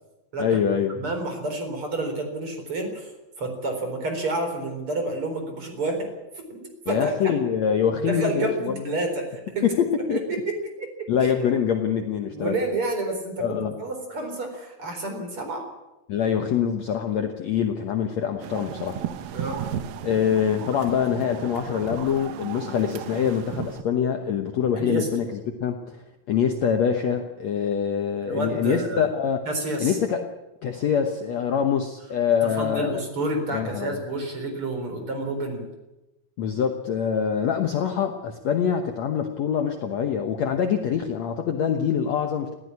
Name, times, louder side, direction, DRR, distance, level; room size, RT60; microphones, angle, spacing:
voice 1, 0.4-1.0 6.9-8.7 9.8-10.2 11.1-12.5 13.4-13.7 16.1-19.0 20.0-26.0 26.3-29.4 29.8-30.3 30.6-33.0 33.5-34.0 36.4-42.5, left 8 dB, 60° left, 5 dB, 1.9 m, -24 dB
voice 2, 0.9-3.1 3.4-6.1 6.3-7.3 8.0-9.7 10.1-11.3 12.3-15.7 19.3-19.8 24.8-25.1 28.2-29.1 29.5-30.0 32.4-35.7, right 2 dB, 35° right, 5 dB, 4.8 m, -29 dB
sound 1, 18.4-23.8, right 10 dB, 75° right, 2.8 m, -35 dB
20.0 x 15.5 x 9.7 m, 1.0 s
omnidirectional pair, 4.3 m